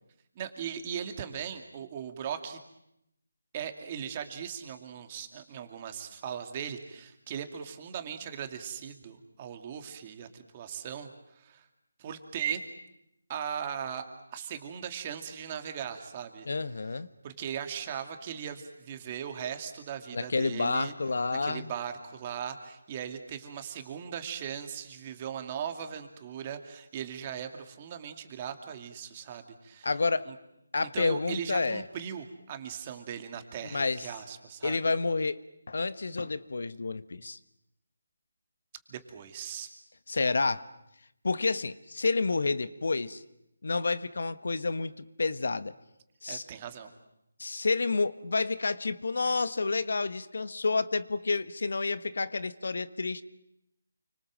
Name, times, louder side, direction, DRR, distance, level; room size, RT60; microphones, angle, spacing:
voice 1, 0.4-2.6 3.5-11.7 12.0-12.6 13.3-14.0 14.3-16.5 17.2-20.9 21.4-29.9 30.3-30.4 30.8-34.8 38.9-39.7 46.3-46.9, right 8 dB, 25° right, 6 dB, 2.6 m, -38 dB
voice 2, 16.5-17.1 20.1-21.7 29.8-30.3 30.7-31.8 33.7-34.1 34.6-35.4 35.7-37.4 40.1-40.6 41.2-43.2 43.6-44.9 45.2-45.7 46.2-46.4 47.4-53.2, left 3 dB, 65° left, 13 dB, 1.4 m, -29 dB
29.5 x 25.0 x 7.6 m, 0.82 s
figure-of-eight pair, 165°, 0 cm